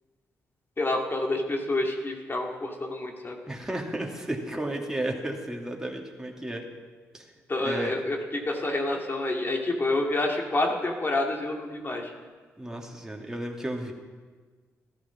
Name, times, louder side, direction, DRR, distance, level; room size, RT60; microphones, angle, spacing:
voice 1, 0.8-3.4 7.5-12.1, left 2 dB, 35° left, 1 dB, 2.5 m, -28 dB
voice 2, 3.5-6.6 7.1-7.3 7.6-8.0 12.6-13.9, right 1 dB, 10° right, 0 dB, 2.7 m, -33 dB
13.0 x 12.5 x 6.0 m, 1.4 s
hypercardioid pair, 45°, 6 cm